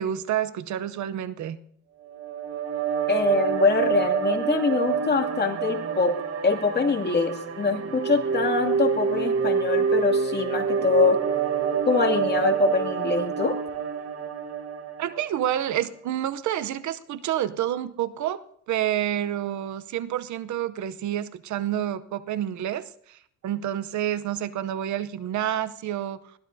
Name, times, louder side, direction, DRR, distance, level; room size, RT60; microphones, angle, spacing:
voice 1, 0.0-1.6 15.0-18.4 18.7-26.2, right 11 dB, 75° right, 13 dB, 0.8 m, -28 dB
sound 1, 2.1-15.5, right 6 dB, 50° right, 1.4 m, -27 dB
voice 2, 3.1-6.1 6.4-11.2 11.9-13.6, left 4 dB, 35° left, 1 dB, 2.5 m, -24 dB
21.5 x 16.0 x 2.7 m, 0.65 s
cardioid pair, 90°, 30 cm